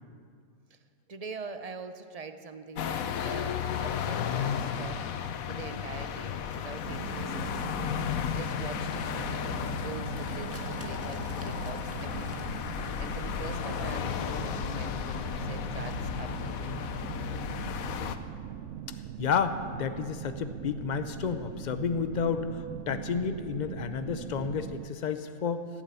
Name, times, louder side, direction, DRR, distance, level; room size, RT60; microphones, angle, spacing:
voice 1, 1.1-5.1 5.5-16.8, right 4 dB, 40° right, 9 dB, 0.6 m, -44 dB
sound 1, 2.7-18.2, left 8 dB, 75° left, 1.2 m, -34 dB
sound 2, 6.8-24.9, right 9 dB, 70° right, 0.8 m, -41 dB
sound 3, 9.3-15.4, equal, 10° right, 1.4 m, -54 dB
voice 2, 19.2-25.7, left 6 dB, 40° left, 10 dB, 0.7 m, -31 dB
16.0 x 9.0 x 8.4 m, 2.1 s
omnidirectional pair, 1.5 m